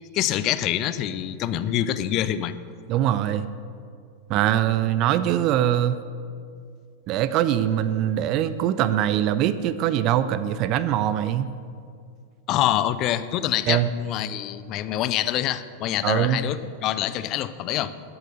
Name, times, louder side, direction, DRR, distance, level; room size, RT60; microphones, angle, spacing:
voice 1, 0.1-2.5 12.5-17.9, left 12 dB, 35° left, 14 dB, 0.5 m, -25 dB
voice 2, 2.9-3.5 4.3-6.0 7.1-11.5 13.7-13.9 16.0-16.4, right 11 dB, 40° right, 13 dB, 0.5 m, -22 dB
13.0 x 7.9 x 6.7 m, 2.3 s
figure-of-eight pair, 90°, 0 cm